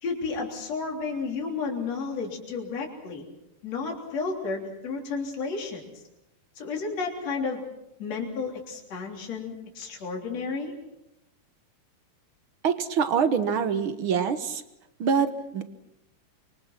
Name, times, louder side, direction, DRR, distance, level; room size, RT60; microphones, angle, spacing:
voice 1, 0.0-3.2 3.6-5.8 6.6-7.6 8.0-10.7, left 4 dB, 55° left, 0 dB, 4.5 m, -32 dB
voice 2, 12.6-14.6 15.0-15.6, right 6 dB, 60° right, 10 dB, 1.5 m, -25 dB
26.0 x 23.5 x 6.0 m, 0.89 s
omnidirectional pair, 3.7 m